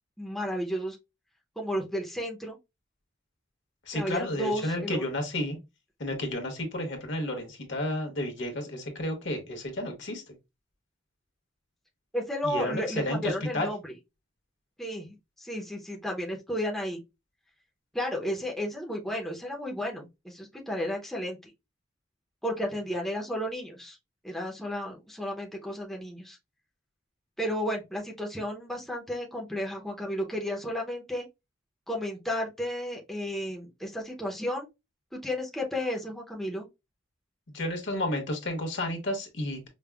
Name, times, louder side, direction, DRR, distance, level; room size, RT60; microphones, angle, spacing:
voice 1, 0.2-1.0 1.6-2.6 3.9-5.0 12.1-13.9 14.8-15.1 15.4-17.0 17.9-21.5 22.4-24.0 24.2-26.4 27.4-31.2 31.9-34.7 35.1-36.7, equal, ahead, 0.6 m, -33 dB
voice 2, 3.9-5.6 6.0-10.2 12.4-13.7 37.5-39.7, left 1 dB, 65° left, 1.1 m, -31 dB
5.1 x 2.0 x 2.3 m
head